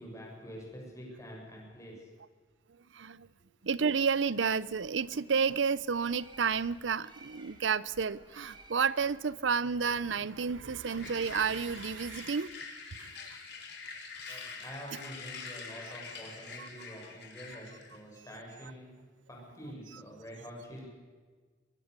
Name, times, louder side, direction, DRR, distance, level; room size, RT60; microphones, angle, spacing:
voice 1, 0.0-2.1 14.3-19.0 19.3-20.9, equal, 15° left, 7.5 m, -46 dB
voice 2, 2.9-3.3 3.6-12.5 13.0-13.3 14.3-14.4 16.6-16.7 19.9-20.0, right 5 dB, 85° right, 0.7 m, -31 dB
Bird, 3.7-9.7, right 2 dB, 25° right, 2.5 m, -58 dB
sound 1, 10.9-18.0, left 5 dB, 60° left, 4.1 m, -45 dB
23.0 x 22.5 x 6.8 m
head